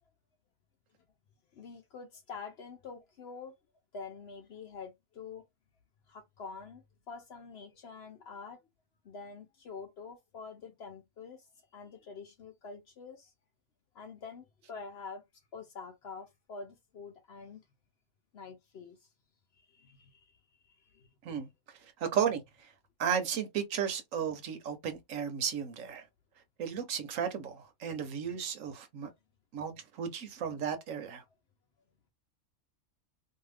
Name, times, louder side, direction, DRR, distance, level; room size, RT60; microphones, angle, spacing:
voice 1, 1.5-3.5 3.9-5.4 6.1-8.6 9.0-13.3 13.9-15.2 15.5-17.6 18.3-19.1 19.6-20.4 20.6-21.1, left 5 dB, 60° left, 0.7 m, -46 dB
voice 2, 22.0-22.4 23.0-26.0 26.6-29.1 29.5-31.2, right 7 dB, 70° right, 1.1 m, -34 dB
2.7 x 2.3 x 3.2 m
omnidirectional pair, 1.5 m